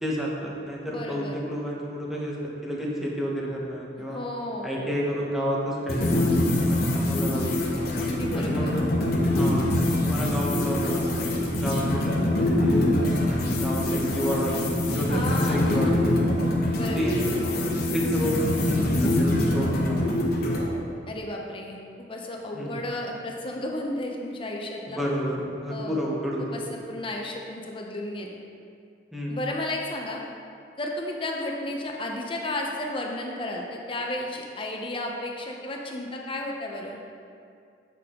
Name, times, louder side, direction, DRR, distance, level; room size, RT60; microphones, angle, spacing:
voice 1, 0.0-4.2 4.6-7.7 8.3-8.8 9.4-11.2 11.5-16.3 16.9-17.2 17.9-20.4 22.5-22.8 24.9-26.7 29.1-29.4, equal, ahead, -4 dB, 1.1 m, -30 dB
voice 2, 0.8-1.4 4.0-4.8 8.0-8.8 15.1-15.9 16.7-17.2 21.1-25.0 25.7-26.1 26.5-28.3 29.3-30.2 30.8-37.0, left 1 dB, 30° left, 0 dB, 0.8 m, -33 dB
sound 1, 5.9-20.7, left 1 dB, 55° left, 1.1 m, -24 dB
7.7 x 6.5 x 3.8 m, 2.4 s
head